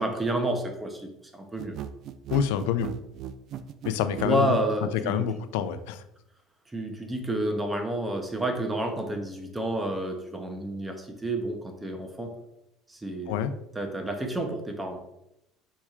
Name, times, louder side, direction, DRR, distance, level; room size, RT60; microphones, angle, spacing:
voice 1, 0.0-1.7 4.2-5.2 6.7-12.3 12.9-13.4 13.7-15.0, right 1 dB, 10° right, 4 dB, 0.7 m, -30 dB
sound 1, 1.6-4.4, right 10 dB, 50° right, 0.3 m, -37 dB
voice 2, 2.3-2.9 3.9-4.6 5.1-6.0 13.3-13.5, left 8 dB, 90° left, 12 dB, 0.3 m, -27 dB
4.6 x 4.2 x 2.4 m, 0.84 s
cardioid pair, 125°, 0 cm